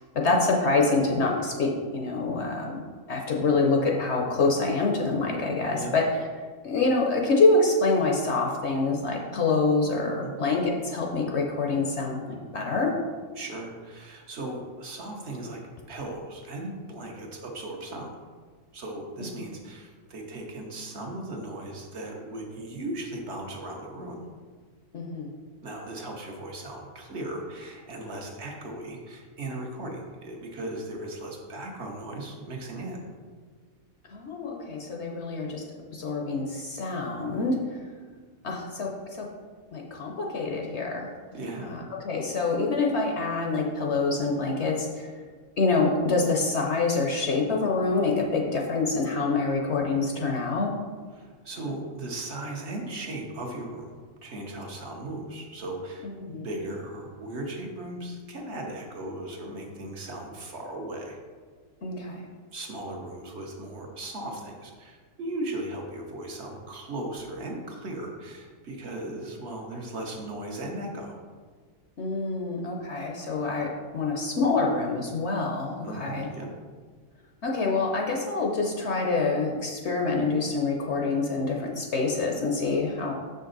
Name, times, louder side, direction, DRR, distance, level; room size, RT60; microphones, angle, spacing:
voice 1, 0.1-2.8 3.1-6.1 6.6-12.9 24.9-25.3 34.1-35.6 35.9-37.6 38.4-39.3 39.7-41.1 41.5-45.1 45.6-50.7 56.2-56.5 61.8-62.3 72.0-76.3 77.4-83.1, left 3 dB, 60° left, 0 dB, 0.9 m, -26 dB
voice 2, 13.3-15.6 15.9-18.1 18.7-24.2 25.6-33.0 41.3-41.7 51.1-53.9 54.2-61.2 62.5-71.2 75.8-76.5, right 1 dB, 55° right, 0 dB, 1.2 m, -37 dB
6.6 x 5.2 x 3.9 m, 1.5 s
omnidirectional pair, 1.5 m